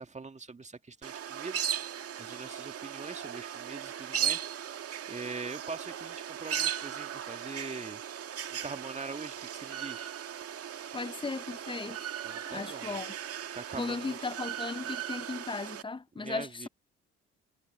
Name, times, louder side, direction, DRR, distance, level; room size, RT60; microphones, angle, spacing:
voice 1, 0.0-1.6 2.2-4.5 5.1-8.0 8.5-10.1 12.2-13.0 13.5-14.2 16.2-16.7, right 4 dB, 25° right, 1.8 m, -42 dB
sound 1, 1.0-15.8, right 9 dB, 50° right, 2.0 m, -37 dB
voice 2, 10.9-12.0 12.5-13.1 13.7-16.7, left 4 dB, 15° left, 0.8 m, -36 dB
hypercardioid pair, 60°, 29 cm